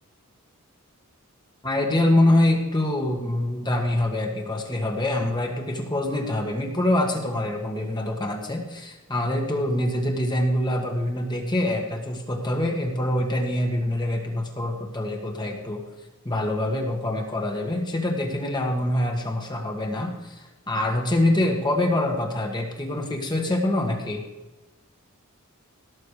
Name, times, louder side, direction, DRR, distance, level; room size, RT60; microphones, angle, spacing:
voice 1, 1.6-15.8 16.2-24.2, left 1 dB, 20° left, 1 dB, 1.9 m, -25 dB
17.5 x 6.9 x 5.0 m, 1.1 s
head